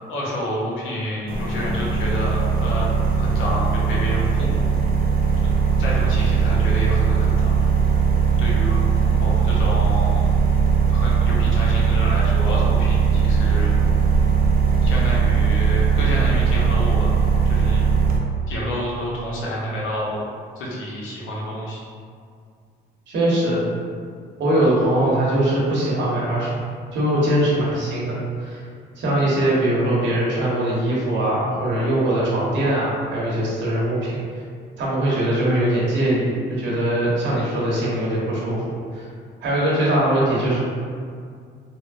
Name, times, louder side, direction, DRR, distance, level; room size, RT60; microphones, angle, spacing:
voice 1, 0.1-2.9 3.1-4.6 5.8-7.6 8.4-8.9 9.2-10.3 10.9-13.7 14.8-17.8 18.5-20.2 20.6-21.8, equal, 85° left, -4 dB, 0.7 m, -29 dB
sound 1, 1.3-18.2, right 5 dB, 45° right, 0.5 m, -19 dB
voice 2, 23.1-23.6 24.4-26.5 26.9-28.6 29.0-34.2 34.8-38.6 38.9-39.1 39.4-40.6, right 1 dB, 70° right, -6 dB, 1.0 m, -21 dB
3.5 x 2.0 x 2.4 m, 2.2 s
cardioid pair, 90°, 20 cm